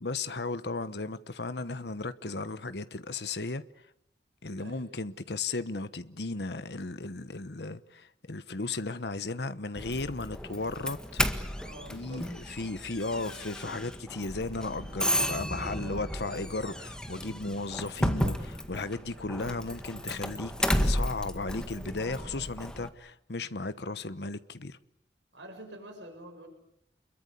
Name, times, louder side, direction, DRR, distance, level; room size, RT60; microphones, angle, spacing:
voice 1, 0.0-3.6 4.4-11.2 11.9-24.8, left 3 dB, 65° left, 1.1 m, -35 dB
Doorbell, 9.7-22.9, equal, 5° left, 1.7 m, -33 dB
voice 2, 11.6-12.3 15.0-16.6 19.1-19.4 22.2-22.6 25.3-26.5, right 1 dB, 85° right, 7.1 m, -47 dB
29.5 x 22.5 x 8.3 m
head